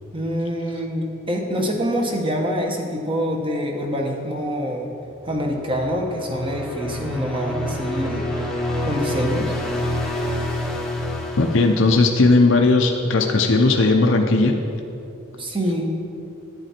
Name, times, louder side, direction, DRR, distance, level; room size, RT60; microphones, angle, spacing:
voice 1, 0.1-4.9 5.2-8.2 8.8-9.5 15.4-15.8, equal, 25° right, 2 dB, 1.1 m, -25 dB
sound 1, 5.2-12.6, left 1 dB, ahead, 1.0 m, -28 dB
voice 2, 11.4-14.5, left 3 dB, 65° left, 3 dB, 0.6 m, -17 dB
11.0 x 9.6 x 4.4 m, 2.8 s
head